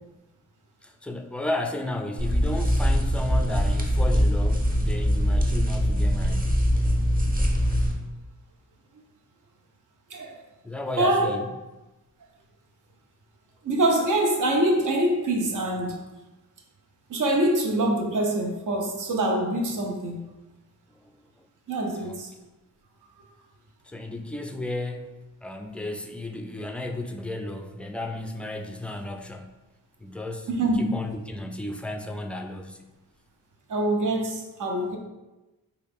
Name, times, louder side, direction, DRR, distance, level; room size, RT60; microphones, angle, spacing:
voice 1, 0.8-6.6 10.6-11.5 22.0-22.2 23.8-29.6 30.0-30.5 30.7-32.9, left 1 dB, 5° left, 4 dB, 0.3 m, -33 dB
sound 1, 2.2-7.9, equal, 25° right, 0.7 m, -22 dB
voice 2, 11.0-11.3 13.6-16.0 17.1-20.3 21.7-22.3 30.5-31.0 33.7-35.0, right 1 dB, 60° right, 2 dB, 0.7 m, -24 dB
3.0 x 2.3 x 3.4 m, 1.1 s
cardioid pair, 50°, 35 cm